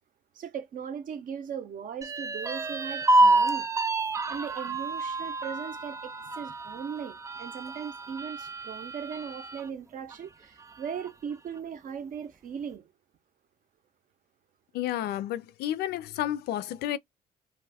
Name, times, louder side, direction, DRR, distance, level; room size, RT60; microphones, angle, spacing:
voice 1, 0.3-3.7 4.3-12.9, right 7 dB, 55° right, 0.7 m, -38 dB
sound 1, 2.0-9.7 10.1-10.2 10.6-11.3, right 2 dB, 20° right, 0.4 m, -28 dB
voice 2, 14.7-17.0, left 12 dB, 70° left, 0.4 m, -31 dB
2.5 x 2.3 x 3.3 m
cardioid pair, 110°, 17 cm